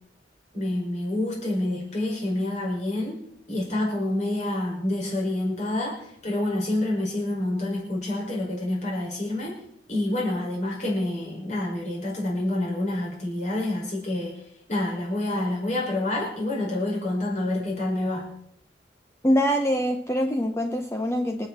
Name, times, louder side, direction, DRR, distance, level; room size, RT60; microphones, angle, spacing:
voice 1, 0.5-3.2 3.5-9.5 9.9-14.4 14.7-18.3, left 1 dB, 40° left, -2 dB, 5.8 m, -27 dB
voice 2, 19.2-21.5, equal, 15° left, 3 dB, 0.9 m, -24 dB
26.0 x 8.8 x 4.3 m, 0.71 s
head